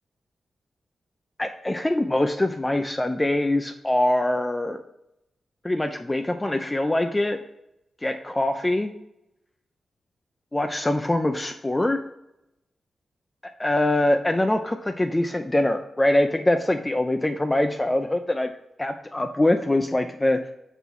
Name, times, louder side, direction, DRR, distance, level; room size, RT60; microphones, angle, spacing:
voice 1, 1.4-4.8 5.6-7.4 8.0-8.9 10.5-12.0 13.6-18.5 18.8-20.4, left 1 dB, 20° left, 6 dB, 0.5 m, -23 dB
6.1 x 3.0 x 5.4 m, 0.85 s
supercardioid pair, 45°, 0 cm